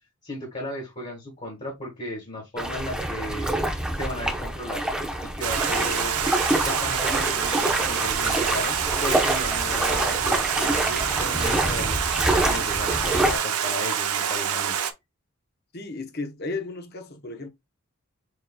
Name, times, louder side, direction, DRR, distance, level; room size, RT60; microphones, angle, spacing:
voice 1, 0.2-3.5 3.9-4.9 5.2-6.2 6.6-14.7, left 1 dB, 30° left, 1.7 m, -35 dB
sound 1, 2.6-13.4, right 1 dB, 5° right, 0.8 m, -26 dB
Stream, 5.4-14.9, right 8 dB, 90° right, 0.7 m, -27 dB
voice 2, 15.7-17.5, left 3 dB, 45° left, 0.9 m, -34 dB
6.7 x 3.1 x 2.2 m
head